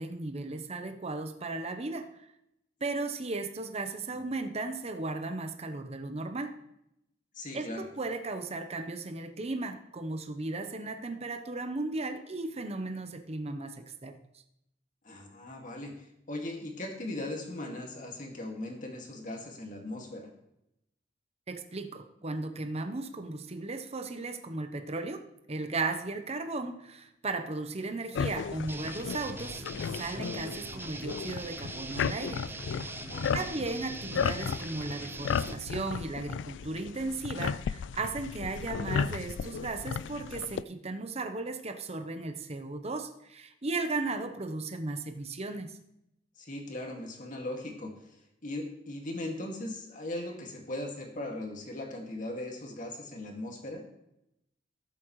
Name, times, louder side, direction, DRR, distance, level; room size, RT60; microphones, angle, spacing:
voice 1, 0.0-2.2 2.8-6.6 7.5-14.2 21.5-25.2 25.5-29.7 30.0-32.5 33.3-45.8, right 3 dB, 35° right, 7 dB, 0.9 m, -36 dB
voice 2, 7.3-7.9 15.0-20.3 33.1-33.5 46.4-53.8, left 1 dB, 45° left, 1 dB, 2.1 m, -39 dB
sound 1, 28.1-40.6, left 6 dB, 70° left, 0.3 m, -35 dB
sound 2, 28.7-35.6, right 2 dB, 10° right, 0.5 m, -42 dB
18.0 x 7.5 x 3.2 m, 0.82 s
head